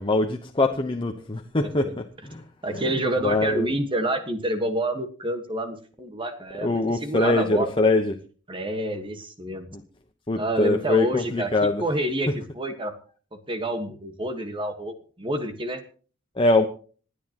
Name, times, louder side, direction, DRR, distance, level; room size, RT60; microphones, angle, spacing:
voice 1, 0.0-2.5 2.7-2.9 3.2-3.7 6.6-8.2 9.7-9.8 10.3-11.8 12.3-12.4 16.4-16.7, left 2 dB, 25° left, 1.0 m, -23 dB
voice 2, 2.6-7.7 8.5-9.7 10.4-11.5 11.8-12.9 13.5-15.8, right 1 dB, 25° right, 1.5 m, -28 dB
27.0 x 9.7 x 3.0 m
head